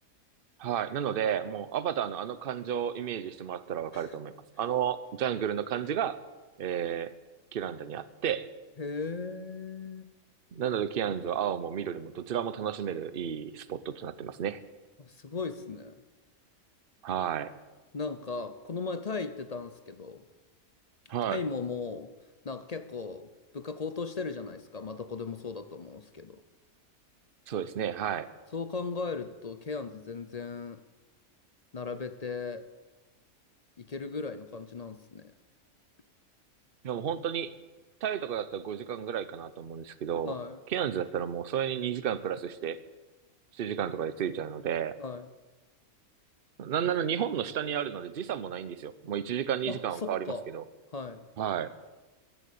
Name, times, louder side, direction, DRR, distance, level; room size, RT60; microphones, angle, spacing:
voice 1, 0.6-6.2 6.6-7.1 7.5-8.5 10.5-14.6 17.0-17.5 21.1-21.4 27.5-28.3 36.8-37.5 38.0-40.3 40.7-42.8 43.5-45.0 46.6-50.6 51.4-51.7, right 9 dB, 45° right, 14 dB, 0.8 m, -32 dB
voice 2, 8.8-10.1 15.0-16.0 17.9-20.3 21.2-22.1 22.4-23.3 23.5-26.4 28.5-30.8 31.7-32.7 33.8-35.3 40.2-40.6 45.0-45.3 49.7-50.5 50.9-51.3, left 4 dB, 40° left, 11 dB, 0.6 m, -37 dB
14.5 x 11.0 x 8.3 m, 1.2 s
omnidirectional pair, 1.5 m